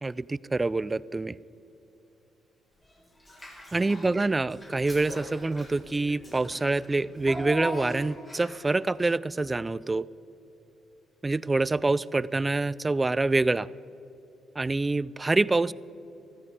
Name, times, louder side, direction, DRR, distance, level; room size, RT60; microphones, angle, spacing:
voice 1, 0.0-1.4 3.7-10.1 11.2-13.7 14.6-15.7, right 3 dB, 20° right, 20 dB, 0.3 m, -26 dB
Child speech kid speaking / Bathtub (filling or washing), 3.2-4.1 4.5-8.7, left 1 dB, 25° left, 4.0 m, -39 dB
14.0 x 14.0 x 4.8 m, 2.9 s
cardioid pair, 90°, 0 cm